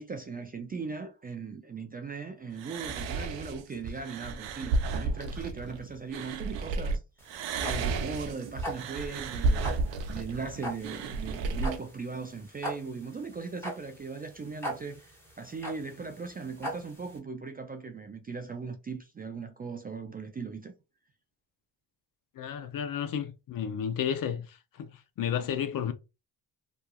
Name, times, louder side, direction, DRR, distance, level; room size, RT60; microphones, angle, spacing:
voice 1, 0.0-7.0 7.6-9.8 10.1-20.7, right 4 dB, 20° right, 0.3 m, -39 dB
sound 1, 2.6-7.0 7.3-11.8, right 3 dB, 65° right, 0.6 m, -32 dB
sound 2, 7.2-17.2, equal, 5° left, 1.0 m, -40 dB
voice 2, 22.4-25.9, left 8 dB, 45° left, 0.5 m, -32 dB
3.0 x 2.3 x 2.2 m
supercardioid pair, 65°, 47 cm